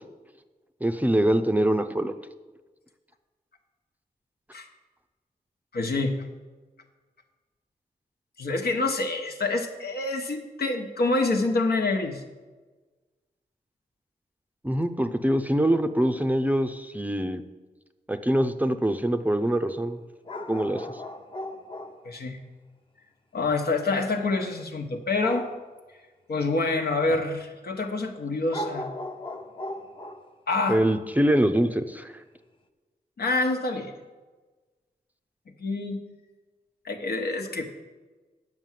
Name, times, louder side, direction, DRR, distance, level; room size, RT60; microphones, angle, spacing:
voice 1, 0.8-2.1 14.6-17.4 18.1-20.0 20.5-20.9 30.7-32.1, right 1 dB, 10° right, 8 dB, 0.5 m, -24 dB
voice 2, 5.7-6.1 8.4-12.2 22.0-22.4 23.3-25.5 26.3-28.9 30.5-30.8 33.2-33.9 35.6-36.0 36.8-37.6, left 3 dB, 75° left, 3 dB, 1.2 m, -27 dB
sound 1, 20.2-22.1 25.2-25.6 27.5-27.6 28.5-30.3 31.2-31.3, left 1 dB, 30° left, 0.9 m, -37 dB
9.0 x 6.1 x 7.5 m, 1.3 s
wide cardioid pair, 80°, 16 cm